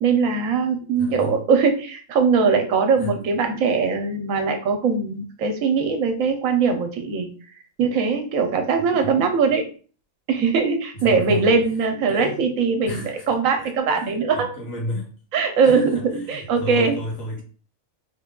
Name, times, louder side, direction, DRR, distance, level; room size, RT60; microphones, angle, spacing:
voice 1, 0.0-7.3 7.8-9.7 10.3-14.5 15.3-17.0, right 5 dB, 70° right, 5 dB, 1.0 m, -21 dB
voice 2, 1.0-1.3 3.0-3.1 9.0-9.1 10.9-11.5 12.1-12.4 12.9-13.3 13.6-15.1 15.6-17.4, equal, 70° left, -2 dB, 1.5 m, -32 dB
3.3 x 2.2 x 3.5 m, 0.40 s
omnidirectional pair, 1.5 m